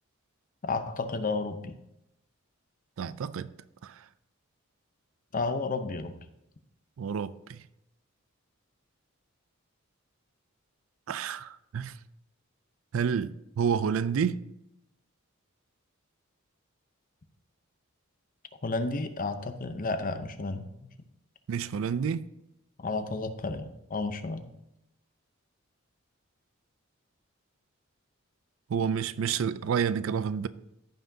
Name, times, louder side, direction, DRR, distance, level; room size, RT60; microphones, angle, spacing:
voice 1, 0.6-1.7 5.3-6.1 18.6-20.7 22.8-24.5, left 3 dB, 40° left, 0.7 m, -32 dB
voice 2, 3.0-3.5 3.8-4.1 7.0-7.6 11.1-12.0 12.9-14.4 21.5-22.2 28.7-30.5, right 7 dB, 75° right, 0.4 m, -29 dB
14.5 x 5.8 x 2.7 m
head